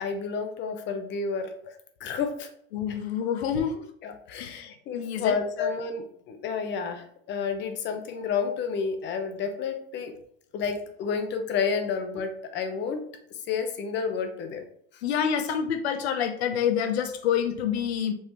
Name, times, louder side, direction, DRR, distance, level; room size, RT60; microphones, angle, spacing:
voice 1, 0.0-1.5 2.0-2.5 4.0-10.1 10.5-13.0 13.5-14.6, left 5 dB, 35° left, 7 dB, 0.8 m, -30 dB
voice 2, 2.7-3.9 4.4-5.7 15.0-18.1, left 8 dB, 80° left, 8 dB, 0.8 m, -27 dB
5.4 x 3.2 x 3.0 m, 0.67 s
hypercardioid pair, 115°, 31 cm